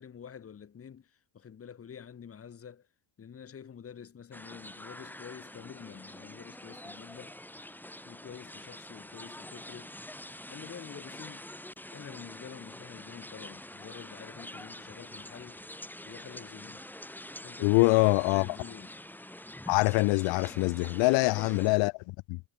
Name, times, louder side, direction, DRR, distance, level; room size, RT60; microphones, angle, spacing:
voice 1, 0.0-2.9 3.2-7.4 8.0-10.0 10.5-11.5 11.9-15.6 16.0-16.9 17.4-17.9 18.3-18.9 21.0-21.5, left 7 dB, 30° left, 1.7 m, -47 dB
sound 1, 4.3-21.7, left 1 dB, 5° left, 2.6 m, -46 dB
voice 2, 17.6-18.5 19.7-22.4, left 24 dB, 90° left, 0.7 m, -24 dB
cardioid pair, 125°, 43 cm